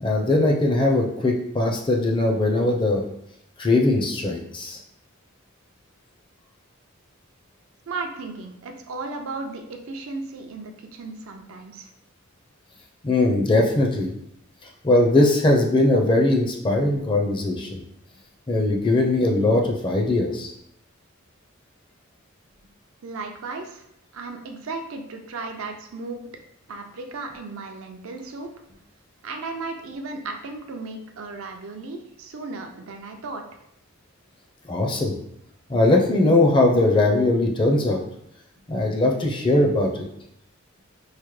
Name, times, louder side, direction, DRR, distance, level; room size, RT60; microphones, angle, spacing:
voice 1, 0.0-3.0 3.6-4.8 13.0-14.1 14.8-17.8 18.5-20.5 34.7-35.1 35.7-38.0 38.7-40.0, left 2 dB, 25° left, 0 dB, 0.4 m, -20 dB
voice 2, 7.9-11.9 23.0-23.8 24.1-26.3 26.7-28.5 29.2-33.4, right 3 dB, 70° right, 4 dB, 0.5 m, -35 dB
4.7 x 2.1 x 3.1 m, 0.76 s
head